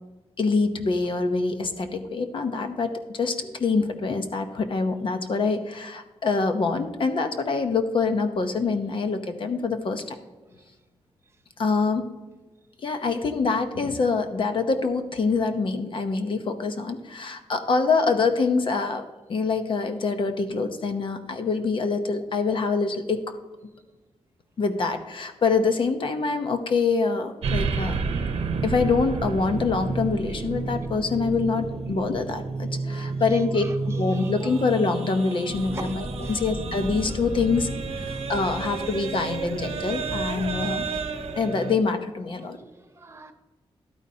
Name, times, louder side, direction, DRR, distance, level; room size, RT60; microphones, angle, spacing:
voice 1, 0.4-10.2 11.6-12.1 12.8-19.0 19.3-23.4 24.6-28.0 28.6-37.7 38.0-40.8 41.4-42.6, left 4 dB, 55° left, 7 dB, 0.8 m, -25 dB
sound 1, 27.4-41.8, right 4 dB, 75° right, 0.8 m, -31 dB
voice 2, 32.8-34.6 35.7-36.4 42.3-43.3, right 3 dB, 25° right, 5 dB, 0.8 m, -43 dB
sound 2, 35.5-41.3, equal, 10° left, 0.7 m, -38 dB
11.5 x 9.4 x 2.8 m, 1.1 s
wide cardioid pair, 165°, 10 cm